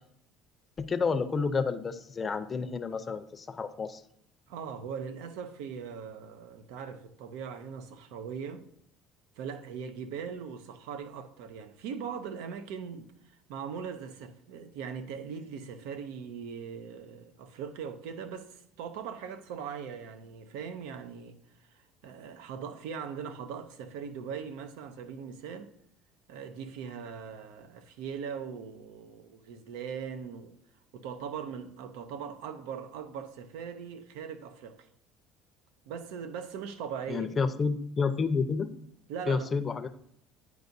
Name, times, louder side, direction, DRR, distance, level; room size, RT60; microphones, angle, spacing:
voice 1, 0.8-4.0 37.1-38.7 39.3-39.9, left 5 dB, 25° left, 0.5 m, -30 dB
voice 2, 4.5-8.6 9.4-25.7 26.3-30.5 30.9-34.9 35.9-37.3 39.1-39.5, right 7 dB, 90° right, 0.6 m, -40 dB
9.3 x 4.7 x 2.6 m
cardioid pair, 125°, 0 cm